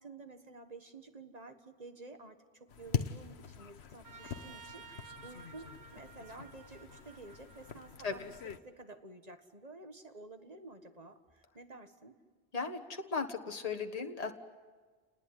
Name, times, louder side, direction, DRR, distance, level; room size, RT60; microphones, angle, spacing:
voice 1, 0.0-8.3 8.6-12.2, right 3 dB, 40° right, 7 dB, 1.8 m, -51 dB
sound 1, 2.7-8.6, left 7 dB, 80° left, 1.2 m, -42 dB
Trumpet, 4.0-8.6, right 6 dB, 80° right, 1.4 m, -54 dB
voice 2, 12.5-14.3, left 4 dB, 35° left, 4 dB, 1.6 m, -36 dB
29.0 x 19.5 x 9.6 m, 1.5 s
omnidirectional pair, 1.1 m